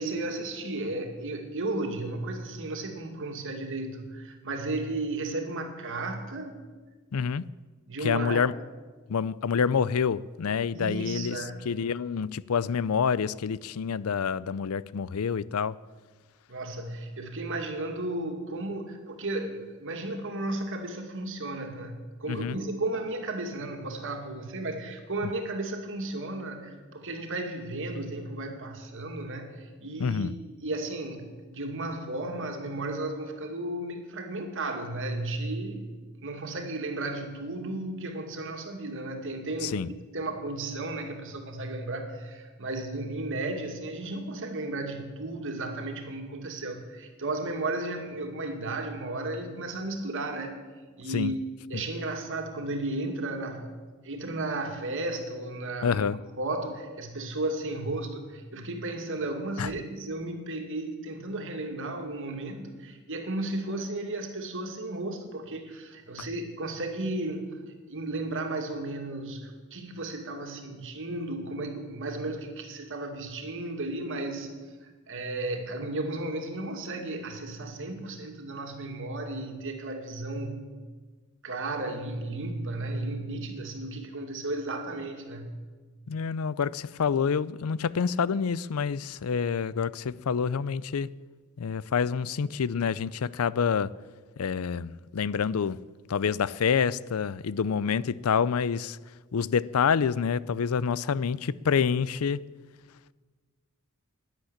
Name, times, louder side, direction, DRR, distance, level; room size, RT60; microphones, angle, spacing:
voice 1, 0.0-6.6 7.9-8.5 10.7-11.6 16.5-30.3 30.6-35.9 36.2-50.6 51.0-53.7 54.0-67.5 67.9-74.5 74.8-80.6 81.4-85.5, right 2 dB, 60° right, 2.3 m, -34 dB
voice 2, 7.1-7.5 8.0-8.5 9.1-11.4 11.7-15.8 22.3-22.6 30.0-30.3 39.6-39.9 51.1-51.3 55.8-56.2 59.6-59.7 66.2-66.3 86.1-91.1 91.6-93.9 94.4-95.8 96.1-99.0 99.3-102.4, left 6 dB, 75° left, 0.5 m, -27 dB
11.5 x 10.5 x 9.9 m
head